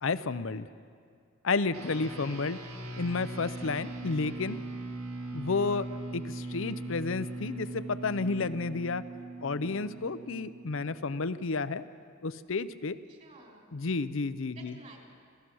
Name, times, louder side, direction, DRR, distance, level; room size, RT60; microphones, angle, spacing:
voice 1, 0.0-0.7 1.4-2.6 3.0-4.6 5.3-5.9 6.1-9.0 9.4-11.9 12.2-13.0 13.7-14.7, left 4 dB, 65° left, 14 dB, 0.6 m, -31 dB
sound 1, 1.7-11.4, right 2 dB, 85° right, 1.8 m, -40 dB
voice 2, 13.1-13.7 14.5-15.0, right 3 dB, 35° right, -1 dB, 3.7 m, -54 dB
26.5 x 16.0 x 6.3 m, 2.2 s
head